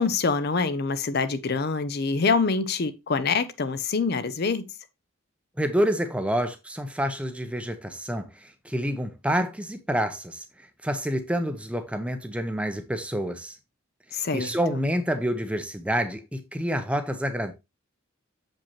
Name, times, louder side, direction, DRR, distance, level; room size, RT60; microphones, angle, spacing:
voice 1, 0.0-4.6 14.1-14.8, left 4 dB, 50° left, 0.5 m, -25 dB
voice 2, 5.6-13.6 14.1-17.5, equal, 5° right, 0.6 m, -28 dB
7.1 x 5.2 x 3.0 m
head